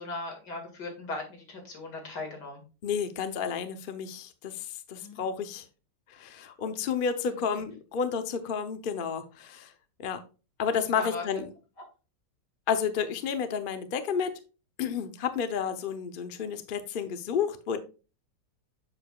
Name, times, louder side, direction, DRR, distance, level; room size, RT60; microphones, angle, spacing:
voice 1, 0.0-2.6 5.0-5.2 7.3-7.6 10.7-11.2, left 2 dB, 85° left, 2 dB, 2.8 m, -39 dB
voice 2, 2.8-5.6 6.1-9.7 10.0-10.2 10.6-11.5 12.7-14.3 14.8-17.8, left 7 dB, 45° left, 8 dB, 0.7 m, -31 dB
7.7 x 6.9 x 2.3 m, 0.33 s
omnidirectional pair, 1.8 m